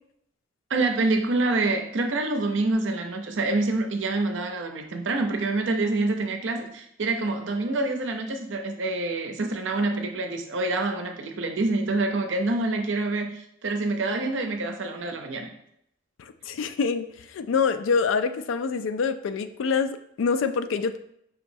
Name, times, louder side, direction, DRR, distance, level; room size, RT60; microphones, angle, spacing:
voice 1, 0.7-13.3 13.6-15.5, right 2 dB, 75° right, 4 dB, 0.6 m, -26 dB
voice 2, 16.2-21.0, left 5 dB, 85° left, 10 dB, 0.3 m, -26 dB
5.6 x 3.0 x 2.6 m, 0.75 s
head